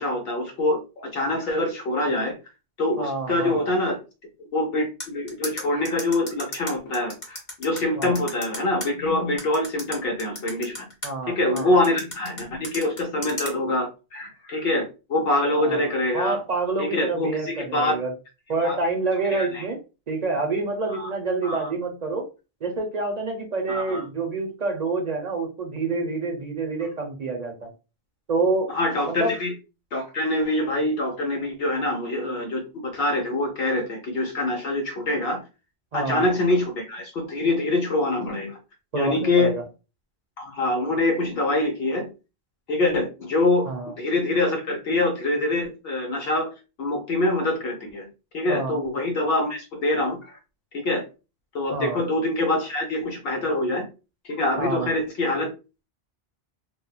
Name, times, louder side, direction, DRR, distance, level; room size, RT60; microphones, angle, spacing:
voice 1, 0.0-2.3 2.8-4.0 4.5-10.9 11.3-16.4 16.8-18.0 18.6-18.8 19.3-19.6 20.9-21.1 21.4-21.7 23.7-24.0 28.7-29.5 29.9-35.4 35.9-38.6 38.9-39.6 40.4-42.1 42.7-46.5 46.8-48.1 48.3-50.4 50.7-51.0 51.5-53.9 54.2-55.5, left 2 dB, 75° left, 2 dB, 0.9 m, -25 dB
voice 2, 3.0-3.7 8.0-8.2 11.0-11.7 15.6-18.1 18.5-19.8 20.1-22.3 22.6-27.7 28.3-28.7 29.1-29.4 35.9-36.3 38.9-39.6 43.7-43.9 48.5-48.8 51.7-52.0 54.6-54.9, right 3 dB, 50° right, 3 dB, 0.5 m, -27 dB
sound 1, 5.0-8.9 9.4-11.1 11.6-13.5, left 1 dB, 50° left, 1.0 m, -34 dB
2.9 x 2.0 x 2.3 m, 0.30 s
omnidirectional pair, 1.0 m